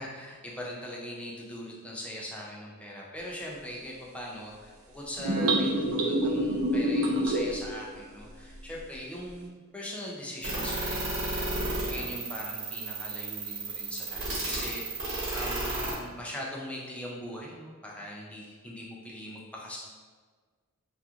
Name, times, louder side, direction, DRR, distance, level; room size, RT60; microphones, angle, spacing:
voice 1, 0.0-19.8, equal, 5° left, -4 dB, 0.4 m, -41 dB
sound 1, 5.2-7.6, right 1 dB, 85° right, 0.4 m, -26 dB
sound 2, 10.4-15.9, right 2 dB, 65° right, 1.0 m, -33 dB
2.9 x 2.3 x 2.3 m, 1.5 s
head